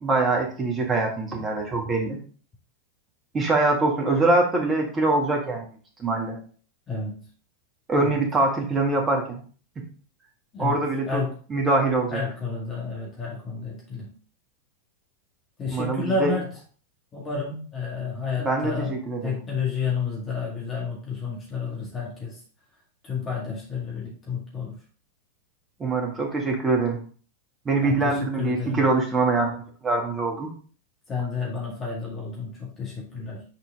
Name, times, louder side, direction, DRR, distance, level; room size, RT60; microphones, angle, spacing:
voice 1, 0.0-2.2 3.3-5.7 6.0-6.4 7.9-9.4 9.8-9.9 10.6-11.2 11.5-12.2 15.7-16.3 18.4-19.4 25.8-27.0 27.7-30.5, right 3 dB, 20° right, 1 dB, 1.6 m, -24 dB
voice 2, 6.9-7.3 8.0-8.2 10.5-11.3 12.1-14.1 15.6-16.6 17.1-22.4 23.0-24.8 27.8-28.9 31.1-33.4, left 5 dB, 25° left, -3 dB, 2.0 m, -31 dB
6.0 x 4.4 x 3.7 m, 0.42 s
figure-of-eight pair, 90°, 0 cm